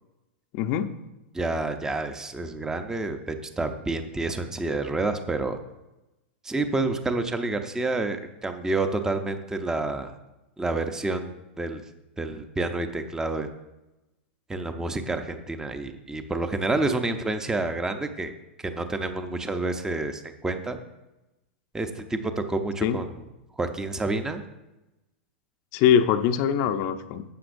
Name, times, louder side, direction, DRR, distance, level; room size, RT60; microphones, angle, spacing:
voice 1, 0.5-0.9 22.8-23.0 25.7-27.2, left 8 dB, 50° left, 8 dB, 0.6 m, -22 dB
voice 2, 1.3-5.6 6.4-10.1 10.6-11.8 12.2-13.5 14.5-18.3 18.6-20.8 21.7-23.2 23.6-24.4, right 2 dB, 10° right, 7 dB, 0.7 m, -29 dB
12.5 x 7.7 x 2.6 m, 1.0 s
hypercardioid pair, 110°, 6 cm